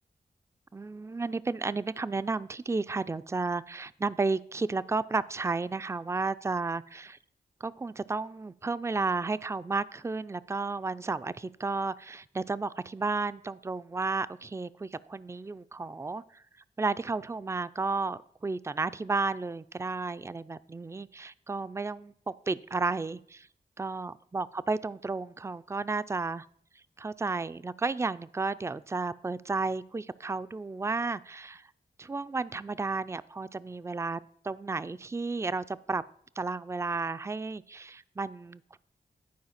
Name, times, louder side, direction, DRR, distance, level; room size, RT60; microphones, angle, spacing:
voice 1, 0.7-7.2 7.6-16.4 16.8-23.5 23.8-26.5 27.0-31.7 32.0-36.0 36.4-38.8, right 3 dB, 15° right, 16 dB, 0.4 m, -32 dB
11.5 x 4.7 x 5.8 m, 0.64 s
cardioid pair, 40°, 18 cm